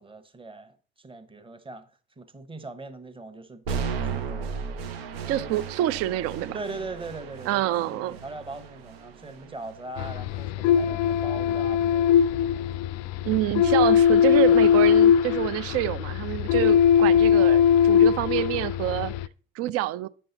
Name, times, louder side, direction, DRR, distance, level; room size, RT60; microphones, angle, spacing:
voice 1, 0.0-1.9 2.2-4.6 5.4-5.5 6.5-12.7 17.0-17.1, right 3 dB, 15° right, 1.1 m, -41 dB
sound 1, 3.7-11.7, right 6 dB, 80° right, 1.0 m, -36 dB
voice 2, 5.3-6.6 7.5-8.2 13.2-19.1 19.6-20.1, right 14 dB, 50° right, 0.5 m, -27 dB
sound 2, 10.0-19.3, left 8 dB, 60° left, 0.4 m, -20 dB
9.4 x 5.5 x 3.9 m
hypercardioid pair, 60°, 30 cm